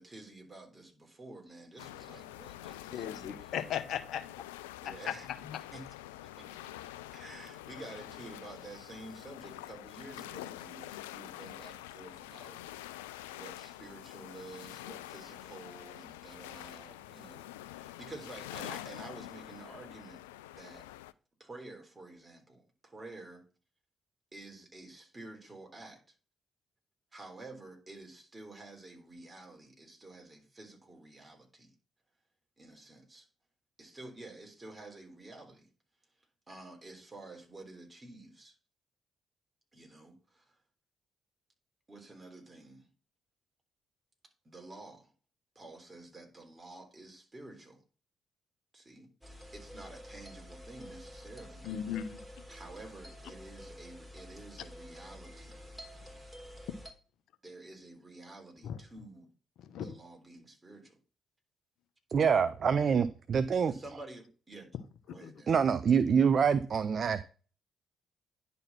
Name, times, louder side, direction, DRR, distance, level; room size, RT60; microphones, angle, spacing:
voice 1, 0.0-3.7 4.8-5.3 5.7-5.9 6.2-6.7 7.1-13.0 13.3-20.9 21.4-23.5 24.3-26.0 27.1-31.7 32.6-33.3 33.8-35.7 36.5-38.6 39.7-40.6 41.9-42.9 44.4-45.1 45.6-47.8 48.7-49.1 49.5-51.7 52.5-55.5 57.4-59.3 59.8-61.0 63.6-64.7 65.1-65.6, right 2 dB, 25° right, 3.5 m, -50 dB
sound 1, 1.8-21.1, left 15 dB, 85° left, 0.3 m, -46 dB
voice 2, 2.9-4.3 4.8-4.9 51.6-52.2 58.6-58.8 59.7-59.8 65.2-65.3, left 9 dB, 65° left, 0.9 m, -36 dB
sound 2, 49.2-56.9, equal, 5° right, 3.3 m, -49 dB
voice 3, 62.1-63.7 65.5-67.2, right 6 dB, 50° right, 0.5 m, -26 dB
10.5 x 4.2 x 5.7 m
hypercardioid pair, 45°, 0 cm